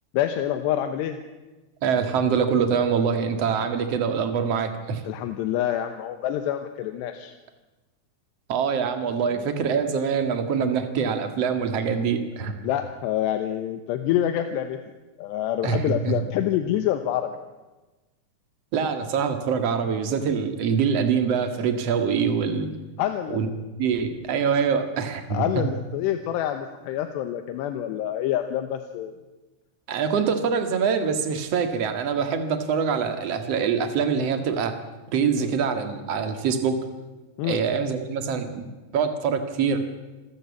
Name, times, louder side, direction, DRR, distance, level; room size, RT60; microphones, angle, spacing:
voice 1, 0.1-1.2 5.0-7.4 9.3-9.5 12.6-14.8 15.2-17.4 23.0-23.6 25.3-29.1 35.4-35.6 37.4-37.6, left 11 dB, 80° left, 7 dB, 3.2 m, -27 dB
voice 2, 1.8-5.0 8.5-12.6 15.6-16.1 18.7-22.7 23.3-23.5 23.8-25.6 29.9-34.8 35.1-36.8 37.4-38.7 38.9-39.8, right 6 dB, 45° right, 7 dB, 2.3 m, -24 dB
27.5 x 14.5 x 8.4 m, 1.2 s
omnidirectional pair, 4.8 m